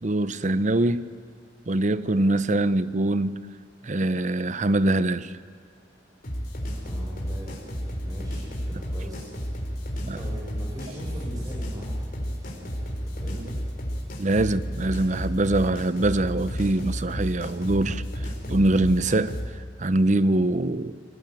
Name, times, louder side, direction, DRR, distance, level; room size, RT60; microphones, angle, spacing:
voice 1, 0.0-1.1 1.7-3.5 3.8-5.3 10.0-10.2 14.2-19.4 19.8-20.9, right 2 dB, 45° right, 0.8 m, -23 dB
sound 1, 6.2-19.5, equal, 55° left, 4.5 m, -32 dB
voice 2, 6.7-7.6 8.0-13.6, equal, 20° right, 4.6 m, -41 dB
24.5 x 18.5 x 9.1 m
head